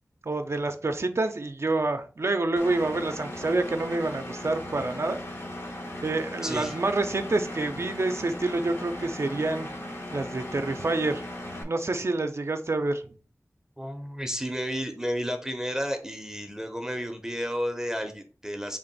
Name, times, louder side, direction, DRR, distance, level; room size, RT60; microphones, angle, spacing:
voice 1, 0.2-5.2 6.0-9.7 10.1-11.3 11.6-13.0, right 2 dB, 55° right, 7 dB, 0.4 m, -27 dB
Engine, 2.6-11.6, left 1 dB, 50° left, 0.7 m, -38 dB
voice 2, 6.4-6.8 13.8-18.8, equal, 10° right, 5 dB, 0.6 m, -32 dB
3.6 x 2.5 x 3.9 m, 0.39 s
wide cardioid pair, 45°, 5 cm